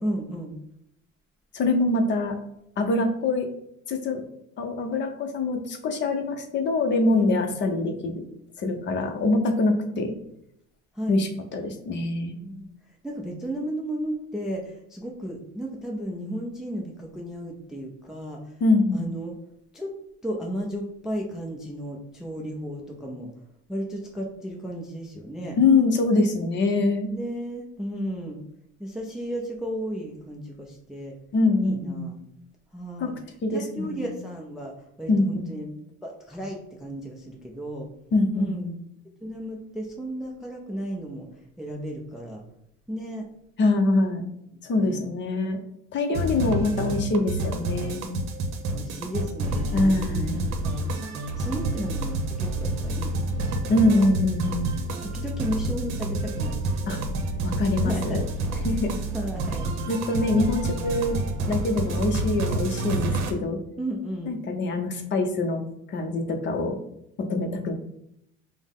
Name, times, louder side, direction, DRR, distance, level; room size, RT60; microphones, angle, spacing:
voice 1, 0.0-0.5 7.1-7.4 10.9-11.2 12.4-18.6 18.9-19.4 19.7-19.9 20.2-23.3 23.7-25.6 27.1-28.4 28.8-31.1 31.6-32.2 32.7-33.1 33.5-35.7 36.0-37.9 38.3-38.7 39.2-41.3 41.6-42.4 42.9-43.3 44.7-45.0 48.7-50.9 51.3-53.8 54.7-57.0 57.8-58.2 59.1-59.7 63.8-64.3, equal, ahead, -1 dB, 0.4 m, -34 dB
voice 2, 1.5-2.4 2.8-3.5 3.9-4.2 4.6-8.2 8.6-10.1 11.1-12.4 18.6-19.0 25.6-27.1 31.3-32.1 33.0-33.1 33.4-34.1 35.1-35.5 38.1-38.7 43.6-44.3 44.6-45.6 45.9-48.0 49.7-50.5 53.7-54.7 56.9-57.0 57.4-58.2 58.6-59.0 59.9-61.2 61.5-63.6 64.3-65.6 65.9-66.8 67.2-67.7, left 2 dB, 40° left, 5 dB, 0.6 m, -24 dB
sound 1, 46.1-63.3, right 2 dB, 65° right, 0.7 m, -28 dB
5.5 x 2.1 x 3.6 m, 0.78 s
cardioid pair, 150°, 30 cm